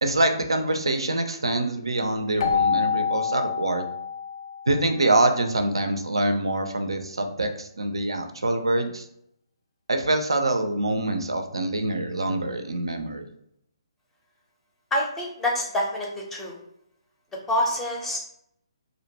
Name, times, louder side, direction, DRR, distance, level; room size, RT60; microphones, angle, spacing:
voice 1, 0.0-3.9 4.7-9.1 9.9-13.3, right 2 dB, 75° right, 6 dB, 0.4 m, -25 dB
Keyboard (musical), 2.4-5.0, left 6 dB, 60° left, 0.4 m, -26 dB
voice 2, 14.9-16.6 17.5-18.2, left 1 dB, 10° left, -1 dB, 0.5 m, -26 dB
2.5 x 2.1 x 2.8 m, 0.75 s
figure-of-eight pair, 135°, 3 cm